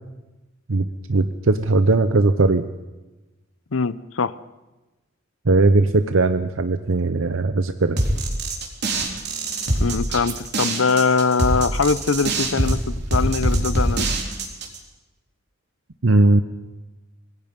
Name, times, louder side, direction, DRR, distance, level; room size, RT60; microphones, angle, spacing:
voice 1, 0.7-2.7 5.4-8.0 16.0-16.4, right 2 dB, 80° right, 10 dB, 0.9 m, -18 dB
voice 2, 3.7-4.3 9.8-14.1, left 4 dB, 85° left, 17 dB, 0.8 m, -22 dB
sound 1, 8.0-14.8, right 1 dB, 55° right, 3.6 m, -23 dB
26.0 x 21.0 x 5.4 m, 1.1 s
head